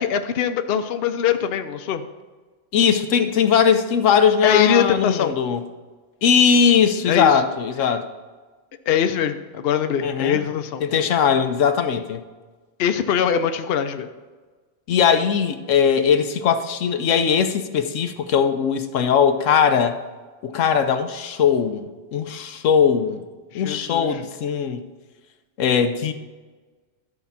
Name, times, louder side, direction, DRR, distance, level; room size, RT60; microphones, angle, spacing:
voice 1, 0.0-2.1 4.4-5.3 7.1-7.4 8.9-10.8 12.8-14.1 23.5-24.1, left 8 dB, 60° left, 8 dB, 0.8 m, -22 dB
voice 2, 2.7-5.6 6.2-8.1 10.0-10.4 10.8-12.2 14.9-20.0 20.4-23.3 23.5-24.8 25.6-26.1, left 7 dB, 85° left, 8 dB, 1.1 m, -19 dB
13.0 x 4.8 x 5.6 m, 1.3 s
omnidirectional pair, 1.3 m